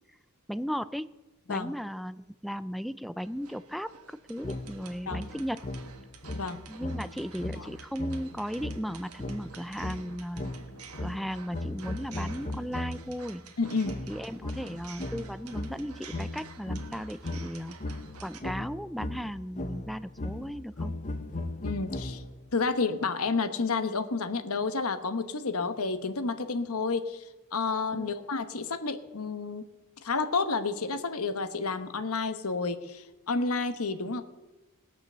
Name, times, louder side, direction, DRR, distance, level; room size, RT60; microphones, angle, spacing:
voice 1, 0.5-1.1 1.5-5.6 6.7-10.5 11.0-13.4 14.1-17.7 18.2-20.9 27.9-28.1, equal, ahead, 14 dB, 0.4 m, -36 dB
sound 1, 3.2-18.4, right 6 dB, 75° right, 1.6 m, -51 dB
sound 2, 4.4-13.2 13.8-22.5, left 2 dB, 35° left, 0.8 m, -38 dB
voice 2, 13.6-14.0 21.6-22.2 22.5-27.2 27.5-29.6 30.0-34.2, left 4 dB, 70° left, 9 dB, 1.1 m, -30 dB
20.5 x 6.8 x 6.8 m, 1.1 s
head